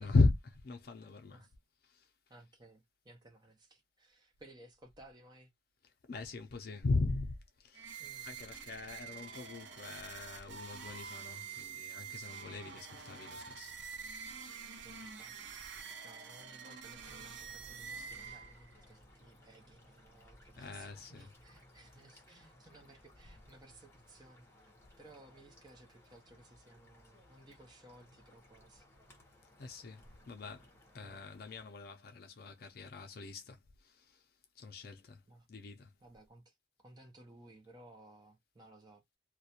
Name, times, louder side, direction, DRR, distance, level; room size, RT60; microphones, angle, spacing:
voice 1, 0.0-1.4 1.8-2.1 6.1-13.8 20.6-21.3 29.6-30.7 30.9-34.2 34.6-35.2 35.5-35.9, left 3 dB, 55° left, 0.4 m, -37 dB
voice 2, 1.0-1.5 2.3-5.5 8.0-8.3 14.8-15.5 16.0-24.7 25.0-28.9 31.0-31.2 35.3-35.5 36.0-39.2, right 1 dB, 25° right, 0.5 m, -59 dB
sound 1, 7.7-18.8, right 6 dB, 75° right, 0.5 m, -47 dB
sound 2, 17.0-31.6, left 1 dB, 15° left, 0.9 m, -62 dB
2.3 x 2.2 x 2.7 m
head